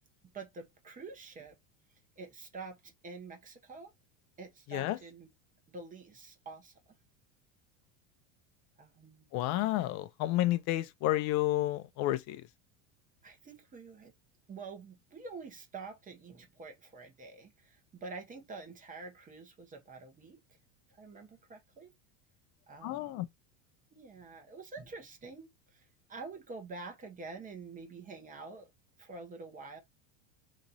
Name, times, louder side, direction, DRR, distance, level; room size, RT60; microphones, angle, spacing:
voice 1, 0.3-1.6 2.2-3.9 4.4-5.3 5.7-6.7 8.8-9.3 13.2-14.1 14.5-20.4 20.9-21.9 22.7-23.3 23.9-28.7 29.0-29.8, right 4 dB, 20° right, 1.0 m, -47 dB
voice 2, 9.3-12.4 22.8-23.3, left 15 dB, 50° left, 0.6 m, -30 dB
3.0 x 2.6 x 4.1 m
supercardioid pair, 120°, 35 cm